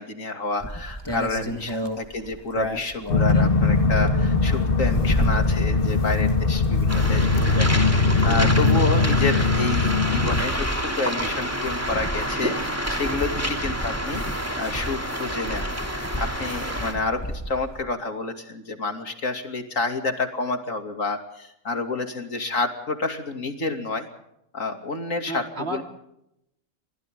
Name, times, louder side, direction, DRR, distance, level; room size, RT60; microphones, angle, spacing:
voice 1, 0.0-7.7 8.2-14.2 14.6-17.2 17.5-24.1 24.5-25.8, left 3 dB, 70° left, 5 dB, 3.2 m, -29 dB
sound 1, 0.6-17.8, equal, 20° left, 1.9 m, -34 dB
sound 2, 3.1-10.4, left 3 dB, 40° left, 2.0 m, -21 dB
Waves surf, 6.9-16.9, equal, 10° right, 2.9 m, -29 dB
voice 2, 25.3-25.8, right 2 dB, 50° right, 4 dB, 3.1 m, -33 dB
28.5 x 24.0 x 3.8 m, 0.81 s
omnidirectional pair, 1.4 m